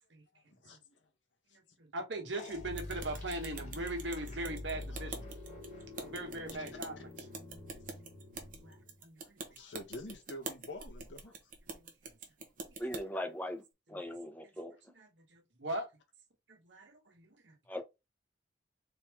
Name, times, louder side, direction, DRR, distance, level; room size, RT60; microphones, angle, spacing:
voice 1, 0.6-1.0 1.5-1.6 2.3-2.5 4.9-5.1 9.4-11.3, left 1 dB, 80° left, 1.5 m, -47 dB
voice 2, 1.8-5.3 6.0-7.0 8.3-9.4 11.7-11.9 13.9-14.1 14.9-15.9 16.5-17.6, right 1 dB, 80° right, 1.4 m, -40 dB
sound 1, 2.4-9.0, left 2 dB, 40° left, 1.6 m, -46 dB
sound 2, 2.8-13.0, right 3 dB, 45° right, 1.1 m, -46 dB
voice 3, 12.8-13.6 13.9-14.7 17.7-17.8, left 1 dB, 10° left, 0.8 m, -39 dB
4.3 x 3.6 x 3.1 m
head